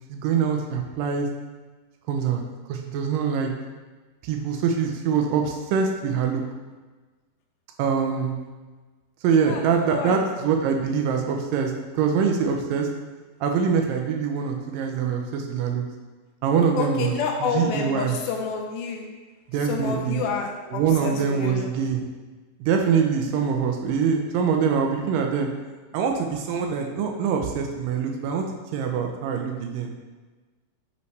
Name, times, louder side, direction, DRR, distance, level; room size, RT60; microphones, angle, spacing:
voice 1, 0.1-1.3 2.1-2.4 2.7-3.5 4.2-6.4 7.8-8.3 9.2-12.9 13.4-15.9 16.4-17.1 17.4-18.2 19.5-20.2 20.7-22.0 22.6-25.5 25.9-28.5 28.7-29.9, right 6 dB, 80° right, 3 dB, 2.1 m, -24 dB
voice 2, 9.4-10.2 16.8-19.1 19.6-21.7, left 5 dB, 90° left, 1 dB, 2.5 m, -29 dB
6.4 x 5.5 x 3.3 m, 1.3 s
omnidirectional pair, 4.2 m